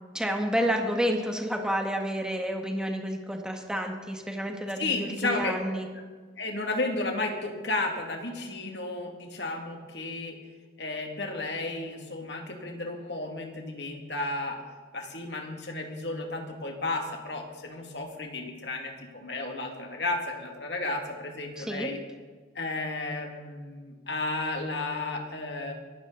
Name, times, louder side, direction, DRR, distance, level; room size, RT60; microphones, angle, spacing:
voice 1, 0.1-5.9 21.6-21.9, equal, 5° right, 2 dB, 1.8 m, -30 dB
voice 2, 4.8-5.8 6.4-10.4 10.8-14.6 14.9-22.0 22.6-25.7, left 2 dB, 70° left, 2 dB, 2.4 m, -33 dB
23.5 x 15.0 x 4.1 m, 1.5 s
head